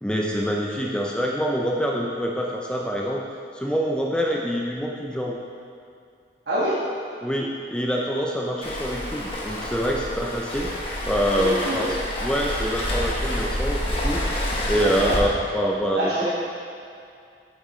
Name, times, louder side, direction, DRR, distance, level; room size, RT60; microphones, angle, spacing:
voice 1, 0.0-3.2 3.5-5.4 7.2-10.7 11.0-11.8 12.2-15.3 15.5-16.1, equal, 5° left, -2 dB, 0.5 m, -25 dB
voice 2, 6.5-6.8 11.3-11.9 14.7-15.1 15.9-16.3, right 1 dB, 90° right, -10 dB, 1.5 m, -26 dB
Waves surf, 8.6-15.2, left 1 dB, 35° left, 1.2 m, -28 dB
8.5 x 7.4 x 3.2 m, 2.4 s
head